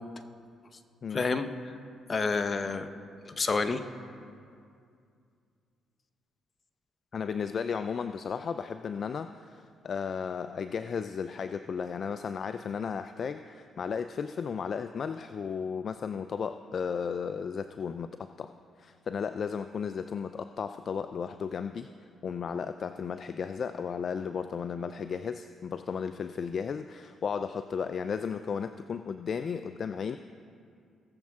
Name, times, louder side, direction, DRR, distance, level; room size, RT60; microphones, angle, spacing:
voice 1, 1.1-1.7 2.1-2.9 3.3-3.8, left 4 dB, 40° left, 10 dB, 0.8 m, -29 dB
voice 2, 7.1-18.5 18.8-21.9 22.2-30.2, left 6 dB, 55° left, 10 dB, 0.3 m, -34 dB
19.0 x 7.2 x 3.6 m, 2.3 s
supercardioid pair, 70°, 0 cm